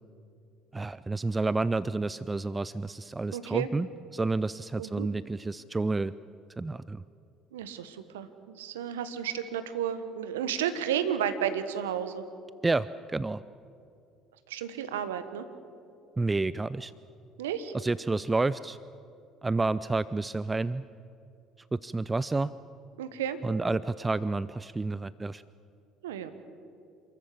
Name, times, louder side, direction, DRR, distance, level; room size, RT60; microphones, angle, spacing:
voice 1, 0.7-6.1 6.6-7.0 12.6-13.4 16.2-16.9 17.7-18.8 19.4-20.8 21.7-22.5 23.4-25.4, right 3 dB, 20° right, 17 dB, 0.5 m, -29 dB
voice 2, 3.3-3.7 4.8-5.1 7.5-12.2 14.5-15.5 17.4-17.7 23.0-23.4 26.0-26.3, right 9 dB, 80° right, 11 dB, 1.3 m, -32 dB
28.0 x 14.0 x 8.6 m, 2.6 s
hypercardioid pair, 60°, 0 cm